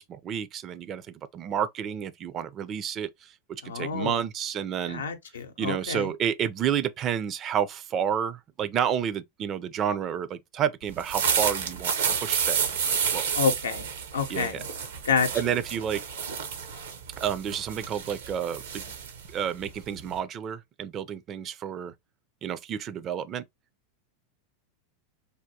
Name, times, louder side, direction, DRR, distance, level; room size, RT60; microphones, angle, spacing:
voice 1, 0.0-5.0 5.6-11.9 12.2-13.2 14.3-14.6 15.3-16.0 17.2-18.8 19.3-21.9 22.4-23.4, right 9 dB, 35° right, 0.4 m, -30 dB
voice 2, 3.6-4.2 4.9-6.1 13.4-13.9 14.1-14.6 15.0-15.3, left 5 dB, 85° left, 0.6 m, -28 dB
sound 1, 10.9-20.2, right 7 dB, 80° right, 0.7 m, -30 dB
3.5 x 2.2 x 2.6 m
hypercardioid pair, 100°, 0 cm